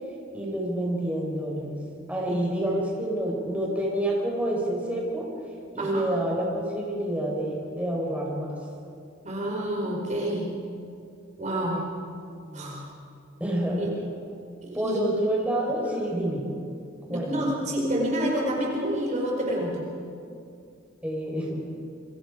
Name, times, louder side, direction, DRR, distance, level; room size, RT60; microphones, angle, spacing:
voice 1, 0.3-1.8 2.1-5.3 5.7-8.5 12.4-12.8 13.4-13.9 14.7-16.4 17.1-17.4 21.0-21.6, right 1 dB, 5° right, -3 dB, 4.8 m, -28 dB
voice 2, 9.2-10.5 11.4-11.8 12.5-12.8 13.8-13.9 14.6-15.0 17.1-19.8, right 1 dB, 35° right, -2 dB, 4.3 m, -28 dB
29.0 x 25.0 x 5.1 m, 2.4 s
head